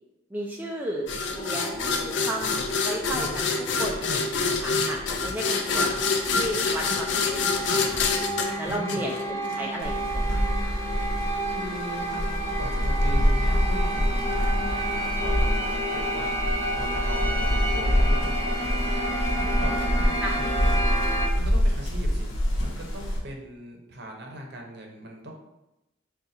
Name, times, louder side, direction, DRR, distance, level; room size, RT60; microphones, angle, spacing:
voice 1, 0.3-6.0 6.3-8.0 8.6-10.7 20.2-20.3, right 1 dB, 10° right, -2 dB, 0.3 m, -34 dB
sound 1, 1.1-9.6, left 4 dB, 60° left, 0.4 m, -27 dB
sound 2, 1.4-21.3, right 1 dB, 15° left, 0.9 m, -31 dB
voice 2, 8.6-9.1 11.5-16.3 16.7-20.8 21.3-25.3, right 1 dB, 55° right, 1 dB, 0.7 m, -39 dB
sound 3, 9.8-23.2, equal, 85° left, 0.9 m, -26 dB
3.9 x 2.4 x 4.1 m, 0.94 s
head